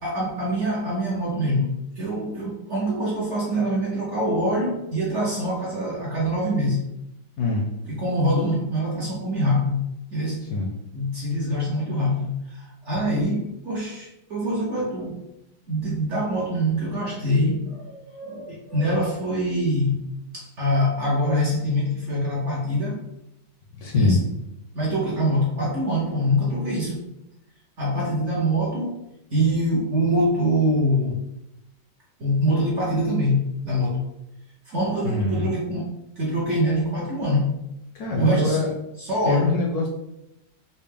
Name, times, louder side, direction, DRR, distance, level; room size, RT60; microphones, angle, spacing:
voice 1, 0.0-6.8 7.9-9.8 10.1-10.4 10.9-15.2 15.7-20.0 20.3-23.0 23.9-24.2 24.7-27.1 27.8-29.0 29.3-31.2 32.2-34.0 34.7-37.6 38.1-38.6 39.0-39.6, equal, 55° right, -6 dB, 0.9 m, -24 dB
voice 2, 7.4-7.7 10.5-10.7 23.8-24.2 35.0-35.5 37.9-38.7 39.3-39.9, left 2 dB, 70° left, -1 dB, 1.0 m, -23 dB
4.3 x 2.1 x 3.4 m, 0.88 s
omnidirectional pair, 2.0 m